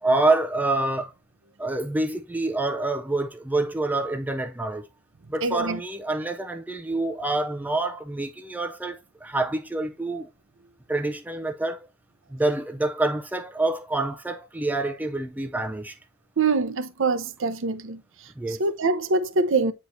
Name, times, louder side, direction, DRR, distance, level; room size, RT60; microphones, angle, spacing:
voice 1, 0.0-1.1 1.6-4.8 5.3-10.3 10.9-11.8 12.3-16.0 18.4-18.6, right 2 dB, 10° right, 0.4 m, -27 dB
voice 2, 5.4-5.8 16.4-18.0 18.5-19.7, right 3 dB, 65° right, 0.7 m, -24 dB
8.2 x 4.6 x 2.6 m
head